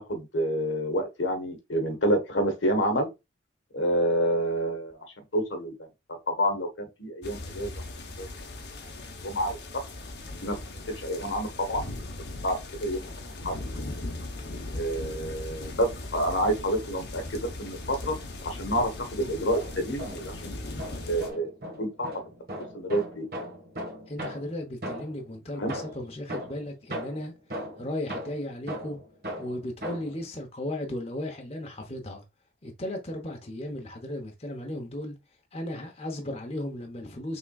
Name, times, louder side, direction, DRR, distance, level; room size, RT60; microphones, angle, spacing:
voice 1, 0.1-3.1 3.7-5.0 5.3-5.9 6.3-7.7 8.2-8.3 9.2-9.6 10.4-10.6 11.0-13.1 13.4-13.6 14.7-18.1 18.4-20.6 21.0-21.5 21.8-22.1 22.7-23.2 25.6-25.7, equal, 85° left, 1.3 m, -28 dB
sound 1, 7.2-21.3, left 2 dB, 60° left, 0.9 m, -39 dB
sound 2, 19.3-20.4 20.8-25.3 25.7-30.2, equal, 50° right, 1.6 m, -38 dB
voice 2, 24.1-27.3 27.8-29.0 29.4-32.2 32.6-35.2 35.5-37.4, left 1 dB, 30° left, 0.9 m, -35 dB
6.0 x 3.7 x 2.3 m
head